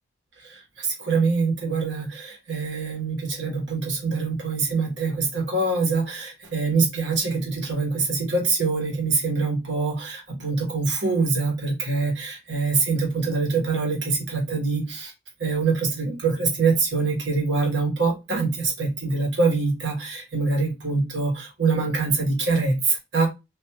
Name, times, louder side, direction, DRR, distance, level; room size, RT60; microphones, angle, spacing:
voice 1, 0.8-15.1 15.4-23.3, right 4 dB, 65° right, 1.3 m, -24 dB
3.4 x 2.6 x 2.8 m
head